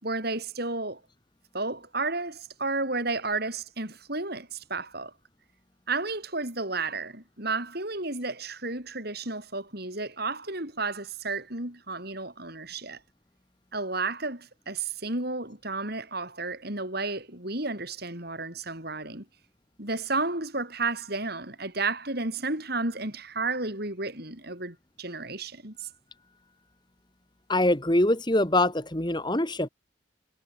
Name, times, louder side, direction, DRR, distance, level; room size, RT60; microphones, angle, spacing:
voice 1, 0.0-1.0 1.5-5.1 5.9-13.0 13.7-19.2 19.8-25.9, right 3 dB, 50° right, 6.2 m, -32 dB
voice 2, 27.5-29.7, left 1 dB, 20° left, 2.1 m, -24 dB
head